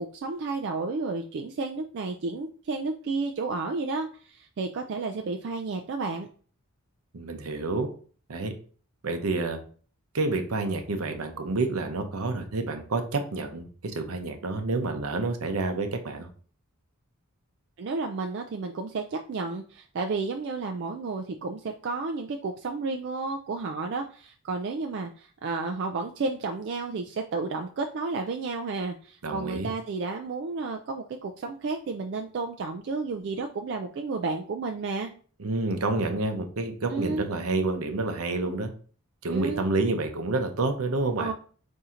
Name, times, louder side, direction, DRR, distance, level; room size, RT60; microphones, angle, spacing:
voice 1, 0.0-6.3 17.8-35.1 36.9-37.3 39.3-39.6 41.2-41.3, right 3 dB, 55° right, 3 dB, 0.3 m, -32 dB
voice 2, 7.1-7.9 8.3-8.5 9.0-9.6 10.1-16.3 29.2-29.7 35.4-38.7 39.2-41.3, right 3 dB, 75° right, 6 dB, 0.7 m, -29 dB
3.7 x 2.7 x 4.2 m, 0.42 s
head